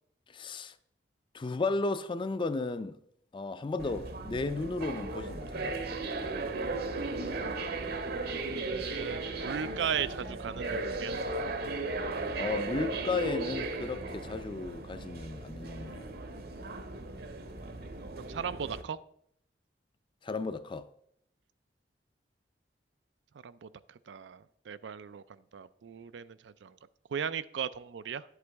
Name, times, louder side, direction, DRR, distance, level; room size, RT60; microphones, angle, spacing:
voice 1, 0.3-0.7 1.3-3.0 3.3-5.8 12.4-16.1 20.2-20.9, left 3 dB, 30° left, 0.4 m, -34 dB
sound 1, 3.8-18.8, right 3 dB, 60° right, 0.9 m, -36 dB
voice 2, 8.3-11.1 18.2-19.0 23.4-23.7 24.1-25.2 25.5-26.7 27.1-28.2, right 7 dB, 90° right, 0.4 m, -37 dB
10.5 x 8.1 x 3.5 m
head